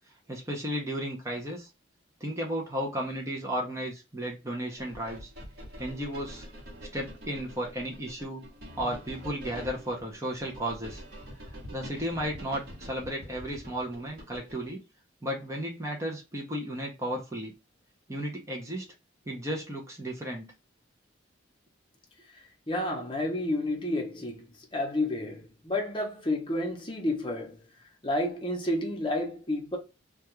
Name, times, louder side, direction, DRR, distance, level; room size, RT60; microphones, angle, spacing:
voice 1, 0.3-1.7 2.2-5.3 5.8-6.5 6.9-8.4 8.8-11.0 11.7-14.8 15.2-17.5 18.1-18.8 19.3-20.5, equal, 15° right, 0.6 m, -34 dB
sound 1, 4.8-14.7, equal, 55° right, 1.1 m, -45 dB
voice 2, 22.7-27.6 28.0-29.8, left 1 dB, 25° left, 0.7 m, -30 dB
2.3 x 2.3 x 2.9 m
head